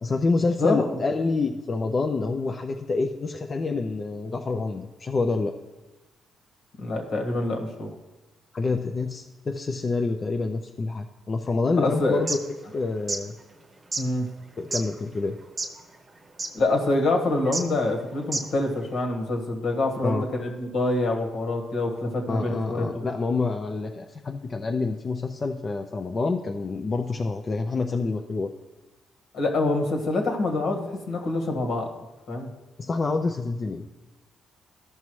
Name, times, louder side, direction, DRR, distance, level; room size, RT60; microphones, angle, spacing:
voice 1, 0.0-5.5 8.5-12.4 12.7-13.3 14.6-15.4 20.0-20.2 22.3-28.5 32.8-33.9, left 3 dB, 35° left, 4 dB, 0.5 m, -27 dB
voice 2, 6.8-7.9 11.8-12.2 14.0-14.3 16.5-23.0 29.3-31.9 32.3-32.5, left 2 dB, 70° left, 2 dB, 1.5 m, -26 dB
sound 1, 12.1-12.4 12.9-13.2 13.9-14.0 14.7-14.8 15.4-15.8 16.1-16.2 16.4-16.5 17.4-17.6 18.2-18.6, right 3 dB, 30° right, 0.8 m, -29 dB
13.5 x 5.5 x 3.1 m, 1.1 s
cardioid pair, 90°, 0 cm